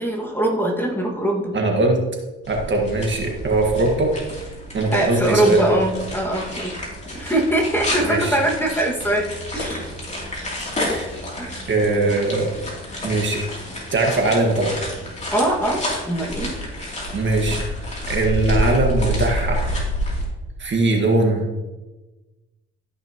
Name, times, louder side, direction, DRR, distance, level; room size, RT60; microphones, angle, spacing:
voice 1, 0.0-1.5 4.9-6.7 7.1-9.3 9.5-9.8 11.4-11.6 15.3-16.5, right 1 dB, 5° left, -1 dB, 1.9 m, -22 dB
voice 2, 1.5-2.0 2.5-4.1 4.7-5.8 8.0-8.4 10.6-11.1 11.7-12.5 13.0-13.4 13.9-14.8 17.1-17.6 18.1-19.6 20.6-21.5, right 2 dB, 40° right, 1 dB, 1.7 m, -20 dB
sound 1, 2.4-20.2, equal, 25° left, 3.0 m, -29 dB
13.5 x 5.8 x 3.0 m, 1.1 s
cardioid pair, 95°, 29 cm